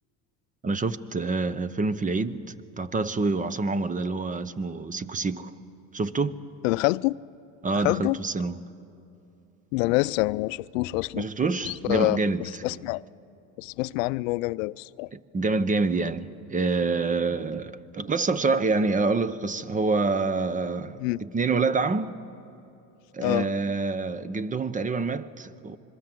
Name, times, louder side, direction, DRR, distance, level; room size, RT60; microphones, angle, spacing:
voice 1, 0.6-2.4 2.8-5.5 5.9-6.4 7.6-8.6 11.1-12.8 15.1-22.1 23.1-25.8, right 3 dB, 20° right, 0.8 m, -27 dB
voice 2, 6.6-7.2 7.8-8.2 9.7-11.3 11.6-13.0 13.6-15.1 21.0-21.2 23.2-23.5, left 21 dB, 80° left, 0.5 m, -26 dB
26.5 x 22.0 x 7.6 m
supercardioid pair, 100°, 39 cm